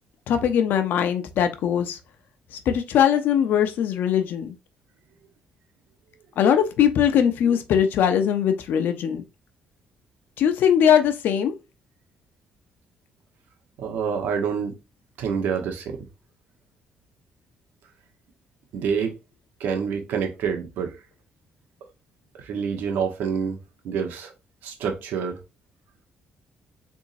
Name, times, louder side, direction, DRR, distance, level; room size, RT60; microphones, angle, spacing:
voice 1, 0.3-2.0 2.7-4.5 6.4-9.2 10.4-11.6, left 9 dB, 75° left, 0.7 m, -21 dB
voice 2, 13.8-14.7 15.2-16.0 18.7-19.1 19.6-21.0 22.4-23.6 23.8-24.3 24.6-25.4, right 6 dB, 85° right, 1.2 m, -27 dB
4.0 x 3.6 x 2.6 m
cardioid pair, 105°, 3 cm